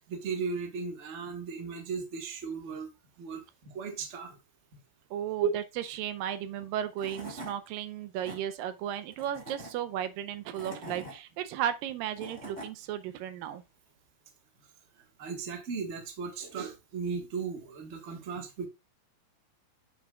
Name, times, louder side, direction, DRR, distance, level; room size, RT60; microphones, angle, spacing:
voice 1, 0.0-2.9 3.2-4.4 5.4-5.5 15.0-18.7, right 5 dB, 40° right, 1.0 m, -36 dB
voice 2, 5.1-13.6, right 10 dB, 85° right, 2.4 m, -35 dB
Tools / Wood, 6.6-6.7 7.0-7.5 8.0-8.4 9.1-9.7 10.3-11.1 11.9-12.7, right 1 dB, 20° right, 2.4 m, -43 dB
8.5 x 7.2 x 2.4 m
omnidirectional pair, 3.9 m